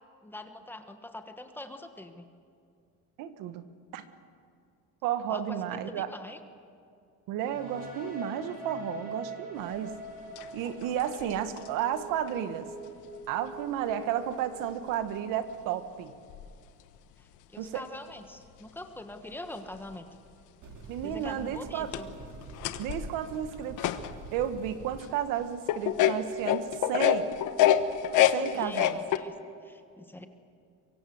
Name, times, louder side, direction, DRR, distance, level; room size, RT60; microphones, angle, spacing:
voice 1, 0.2-2.2 5.3-6.4 17.2-20.1 21.0-22.1 28.2-29.3 29.6-30.3, left 1 dB, 5° left, 6 dB, 1.4 m, -44 dB
voice 2, 3.2-3.6 3.9-4.0 5.0-6.1 7.3-9.9 10.5-12.7 13.3-16.1 17.6-17.8 20.9-21.9 22.8-23.9 24.3-27.3 28.3-29.0, right 10 dB, 80° right, 10 dB, 1.7 m, -32 dB
sound 1, 7.4-15.1, right 1 dB, 25° right, 5.9 m, -44 dB
sound 2, 10.4-11.7 12.3-12.4 14.3-14.4 15.5-15.6 16.3-16.5 19.7-19.8 20.7-20.8 21.3-21.4 21.7-24.4 24.9-25.0 25.7-29.2, left 11 dB, 70° left, 1.3 m, -27 dB
sound 3, 20.6-25.0, right 3 dB, 65° right, 3.1 m, -47 dB
24.0 x 23.5 x 7.9 m, 2.4 s
cardioid pair, 160°, 32 cm